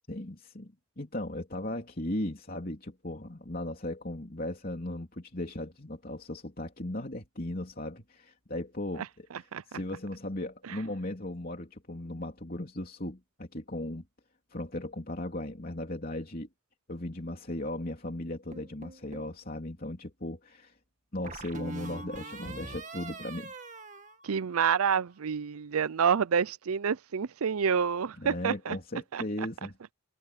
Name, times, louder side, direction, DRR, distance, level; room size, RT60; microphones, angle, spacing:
voice 1, 0.1-14.0 14.5-16.5 16.9-20.8 21.1-23.5 28.2-29.8, left 1 dB, 40° left, 3.4 m, -37 dB
sound 1, 18.5-19.4 21.2-24.9, right 3 dB, 35° right, 2.2 m, -43 dB
voice 2, 24.2-28.8 29.1-29.5, right 7 dB, 90° right, 0.5 m, -28 dB
head